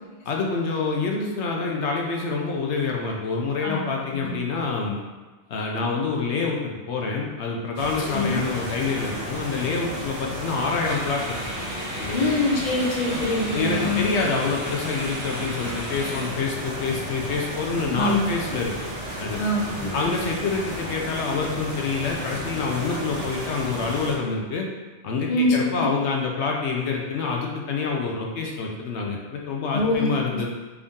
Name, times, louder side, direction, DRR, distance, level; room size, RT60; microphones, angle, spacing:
voice 1, 0.3-5.0 5.5-11.4 12.0-12.2 13.5-18.7 19.2-19.4 19.9-24.7 25.0-30.5, left 4 dB, 70° left, 0 dB, 0.9 m, -27 dB
sound 1, 5.0-5.1 5.6-5.7 10.6-16.3, equal, 45° right, 0.8 m, -37 dB
sound 2, 7.8-24.2, equal, 85° right, 1.3 m, -33 dB
voice 2, 12.1-14.1 17.9-18.3 19.4-20.1 25.3-25.9 29.7-30.1 30.3-30.4, left 2 dB, 50° left, -1 dB, 0.6 m, -24 dB
3.5 x 2.7 x 3.5 m, 1.2 s
omnidirectional pair, 1.2 m